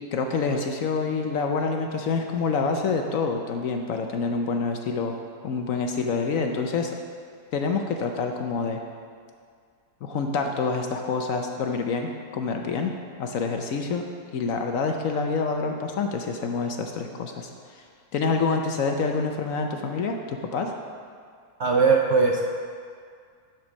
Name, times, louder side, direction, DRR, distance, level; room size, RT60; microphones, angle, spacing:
voice 1, 0.1-5.2 5.4-6.9 7.5-8.8 10.0-12.9 13.2-14.0 14.3-17.8 18.1-20.7, left 4 dB, 65° left, 4 dB, 0.9 m, -27 dB
voice 2, 21.6-22.4, right 4 dB, 60° right, 0 dB, 0.7 m, -19 dB
10.5 x 4.6 x 6.1 m, 2.1 s
omnidirectional pair, 1.7 m